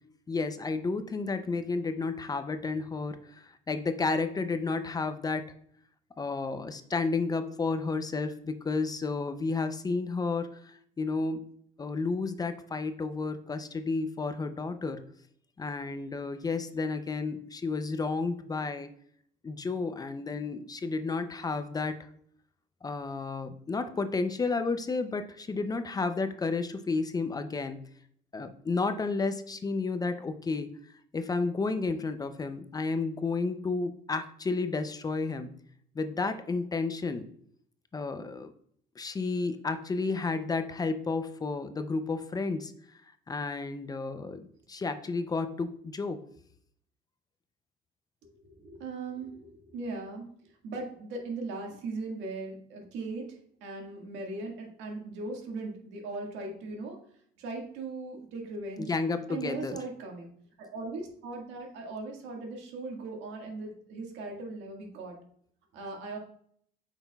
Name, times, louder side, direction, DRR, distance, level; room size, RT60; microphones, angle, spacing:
voice 1, 0.3-5.5 6.2-11.4 11.8-15.0 15.6-18.9 19.4-22.0 22.8-27.8 28.3-30.7 31.1-35.5 35.9-37.3 37.9-38.5 39.0-42.7 43.3-46.2 58.8-59.8, left 4 dB, 20° left, 9 dB, 0.5 m, -32 dB
voice 2, 48.4-50.3 50.6-57.0 57.4-58.9 59.3-60.3 60.6-65.2 65.7-66.2, right 3 dB, 85° right, 1 dB, 1.8 m, -39 dB
8.5 x 5.8 x 2.3 m, 0.64 s
cardioid pair, 125°, 18 cm